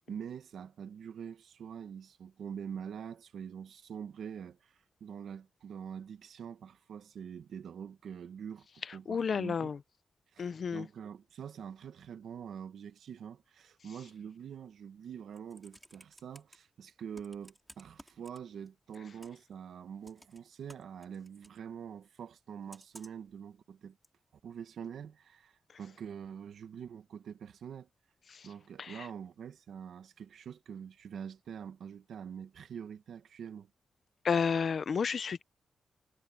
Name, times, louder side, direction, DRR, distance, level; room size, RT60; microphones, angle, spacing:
voice 1, 0.1-9.7 10.3-24.0 24.4-27.9 28.4-33.7, right 8 dB, 80° right, 1.2 m, -45 dB
voice 2, 8.8-9.8 10.4-10.9 28.3-28.5 28.8-29.1 34.2-35.4, left 6 dB, 45° left, 0.6 m, -32 dB
Computer keyboard, 15.3-16.6 17.1-18.7 18.9-19.5 20.0-21.6 22.7-23.3 24.0-24.1, right 1 dB, 5° right, 4.3 m, -56 dB
wide cardioid pair, 175°, 0 cm